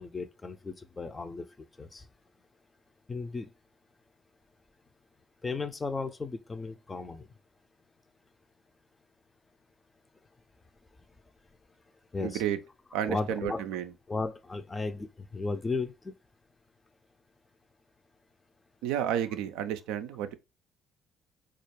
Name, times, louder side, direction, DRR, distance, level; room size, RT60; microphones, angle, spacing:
voice 1, 0.0-2.1 3.1-3.5 5.4-7.3 12.1-12.4 13.1-13.6 14.1-16.1, left 3 dB, 25° left, 0.5 m, -35 dB
voice 2, 12.2-12.6 12.9-13.9 18.8-20.3, right 10 dB, 70° right, 0.3 m, -31 dB
4.2 x 2.4 x 3.0 m
figure-of-eight pair, 45°, 0 cm